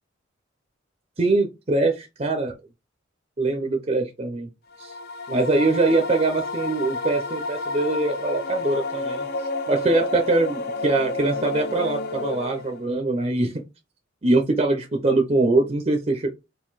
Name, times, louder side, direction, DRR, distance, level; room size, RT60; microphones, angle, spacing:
voice 1, 1.2-2.5 3.4-4.5 4.8-4.9 5.3-9.3 9.7-13.5 14.2-16.3, right 2 dB, 35° right, 3 dB, 0.6 m, -23 dB
sound 1, 4.7-12.9, left 2 dB, 50° left, 0.5 m, -30 dB
3.8 x 2.7 x 4.0 m, 0.24 s
head